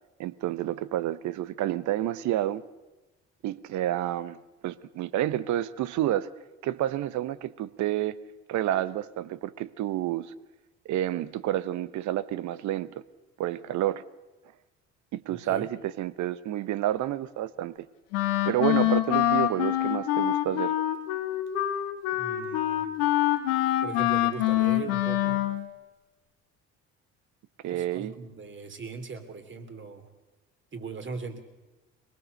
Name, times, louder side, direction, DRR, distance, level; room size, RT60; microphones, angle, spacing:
voice 1, 0.2-2.6 3.4-4.4 4.6-6.3 6.6-8.2 8.5-10.3 10.8-12.9 13.4-14.0 15.1-17.8 18.5-20.8 27.6-28.1, right 13 dB, 65° right, 17 dB, 1.0 m, -29 dB
voice 2, 15.3-15.7 18.8-18.9 22.1-22.8 23.8-25.5 27.7-30.1 30.7-31.4, right 4 dB, 35° right, 7 dB, 3.1 m, -39 dB
Wind instrument woodwind instrument, 18.1-25.6, left 13 dB, 85° left, 1.6 m, -25 dB
22.5 x 19.0 x 6.6 m, 1.1 s
hypercardioid pair, 65°, 32 cm